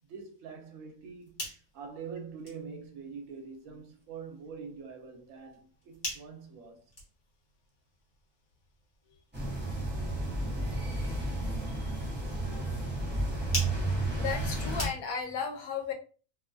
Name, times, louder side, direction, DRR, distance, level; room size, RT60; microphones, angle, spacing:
voice 1, 0.1-1.4 1.7-6.8, right 5 dB, 70° right, 0.9 m, -44 dB
sound 1, 1.0-15.4, left 1 dB, 45° left, 1.3 m, -45 dB
sound 2, 9.3-14.9, right 2 dB, 10° right, 0.8 m, -32 dB
voice 2, 14.2-15.9, left 6 dB, 80° left, 1.1 m, -34 dB
2.6 x 2.2 x 2.5 m
omnidirectional pair, 1.5 m